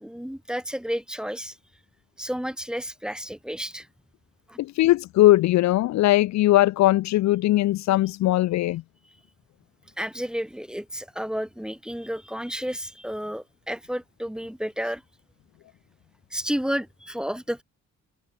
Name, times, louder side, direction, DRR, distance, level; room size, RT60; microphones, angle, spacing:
voice 1, 0.0-1.6 2.2-3.9 4.5-4.6 10.0-15.0 16.3-17.6, equal, 5° right, 1.1 m, -31 dB
voice 2, 4.6-8.8, left 16 dB, 65° left, 0.5 m, -20 dB
open air
cardioid pair, 90°, 30 cm